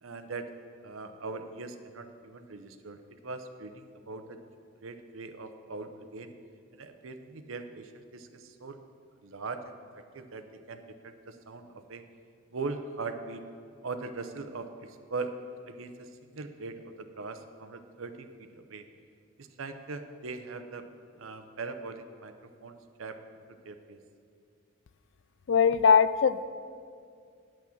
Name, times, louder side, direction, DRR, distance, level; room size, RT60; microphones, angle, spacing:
voice 1, 0.0-4.4 4.8-6.3 6.7-8.8 9.2-12.0 12.5-13.4 13.8-15.4 15.7-18.3 18.5-18.8 19.4-20.9 21.2-23.2 23.6-24.0, right 3 dB, 75° right, 8 dB, 0.7 m, -41 dB
voice 2, 25.5-26.4, left 6 dB, 60° left, 14 dB, 0.3 m, -21 dB
10.0 x 6.1 x 7.2 m, 2.2 s
head